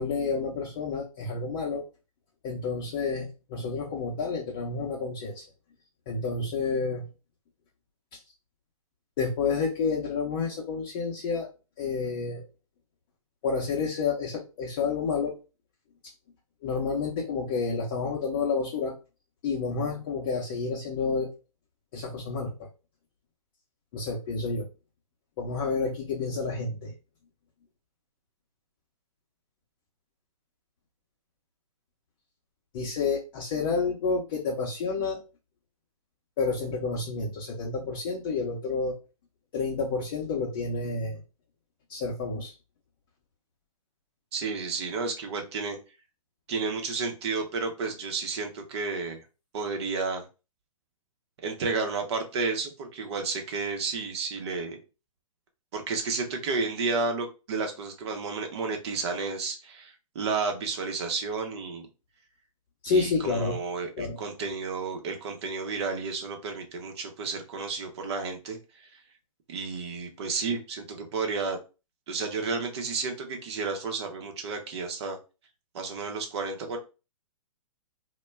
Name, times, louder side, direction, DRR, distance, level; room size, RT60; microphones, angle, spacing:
voice 1, 0.0-1.8 2.4-5.4 6.1-7.0 9.2-11.5 11.8-12.4 13.4-15.3 16.6-18.9 19.4-21.3 21.9-22.7 23.9-24.7 25.4-26.9 32.7-35.2 36.4-39.0 39.5-41.2 41.9-42.5 62.8-63.6 64.0-64.2, left 4 dB, 40° left, -2 dB, 0.6 m, -29 dB
voice 2, 44.3-45.8 46.5-49.2 49.5-50.2 51.4-54.8 55.7-61.9 62.9-68.9 69.5-71.6 72.1-75.2 75.7-76.8, right 4 dB, 45° right, 4 dB, 0.8 m, -32 dB
2.2 x 2.1 x 3.3 m, 0.30 s
figure-of-eight pair, 120°, 19 cm